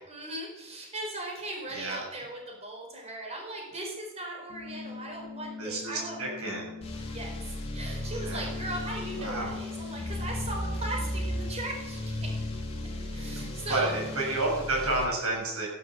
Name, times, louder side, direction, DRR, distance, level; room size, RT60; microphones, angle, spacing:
voice 1, 0.1-6.4 7.0-12.3 13.1-14.0, right 1 dB, 30° right, 0 dB, 4.9 m, -38 dB
sound 1, 4.5-14.5, left 4 dB, 65° right, 4.2 m, -42 dB
voice 2, 5.6-6.8 8.1-8.5 9.2-9.6 13.4-15.7, right 2 dB, 90° right, -1 dB, 7.5 m, -31 dB
sound 2, 6.8-15.1, left 1 dB, 30° left, 3.2 m, -36 dB
15.5 x 11.5 x 7.6 m, 1.0 s
head